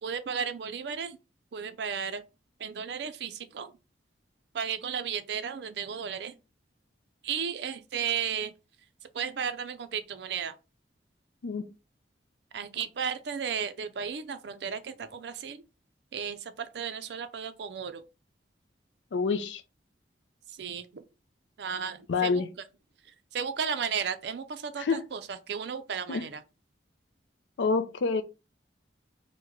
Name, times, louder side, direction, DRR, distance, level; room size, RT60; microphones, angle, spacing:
voice 1, 0.0-1.2 1.5-2.2 2.6-3.7 4.5-6.4 7.2-8.5 9.1-10.5 12.5-15.6 16.1-18.0 20.5-21.0 21.6-22.3 23.3-26.4, right 7 dB, 65° right, 0.4 m, -34 dB
voice 2, 19.1-19.6 22.1-22.5 24.8-25.0 26.1-26.2 27.6-28.2, left 4 dB, 80° left, 0.4 m, -27 dB
3.1 x 2.1 x 3.5 m
head